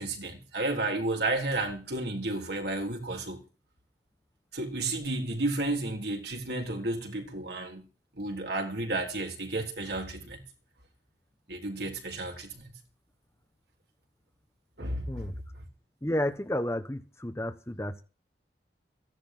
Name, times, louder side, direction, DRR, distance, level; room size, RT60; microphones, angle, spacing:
voice 1, 0.0-3.4 4.5-7.8 8.2-10.4 11.5-12.6 14.8-15.2, right 2 dB, 65° right, 3.6 m, -32 dB
voice 2, 16.0-18.0, left 1 dB, 15° left, 1.1 m, -31 dB
15.0 x 10.5 x 6.1 m
head